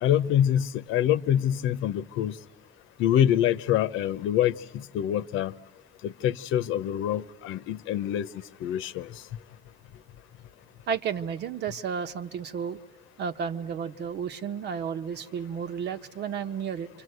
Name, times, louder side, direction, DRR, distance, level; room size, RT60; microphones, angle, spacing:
voice 1, 0.0-2.4 3.0-5.5 6.0-8.3 8.6-9.2, left 10 dB, 85° left, 13 dB, 1.0 m, -25 dB
voice 2, 10.9-12.8 13.2-16.9, right 7 dB, 60° right, 9 dB, 1.3 m, -32 dB
28.5 x 25.5 x 8.0 m, 1.1 s
cardioid pair, 130°, 20 cm